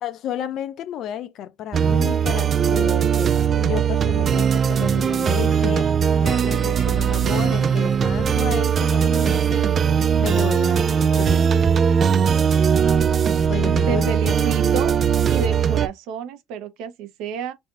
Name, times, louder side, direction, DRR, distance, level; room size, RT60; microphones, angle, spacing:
voice 1, 0.0-9.9 10.2-11.7 13.4-14.6, left 11 dB, 50° left, 0.6 m, -32 dB
sound 1, 1.7-15.9, right 7 dB, 30° right, 0.3 m, -19 dB
voice 2, 13.9-15.0 15.3-17.5, right 5 dB, 75° right, 1.0 m, -30 dB
3.4 x 2.6 x 3.8 m
cardioid pair, 150°, 0 cm